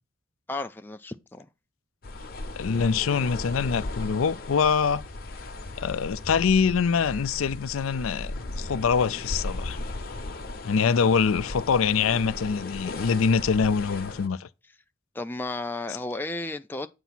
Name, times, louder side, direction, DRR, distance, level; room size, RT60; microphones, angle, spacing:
voice 1, 0.5-1.5 15.1-16.9, left 2 dB, 10° left, 0.4 m, -33 dB
sound 1, 2.0-14.3, left 2 dB, 45° left, 0.8 m, -37 dB
voice 2, 2.6-5.0 5.8-9.8 10.6-14.5, left 6 dB, 75° left, 0.4 m, -24 dB
8.1 x 2.8 x 5.9 m
head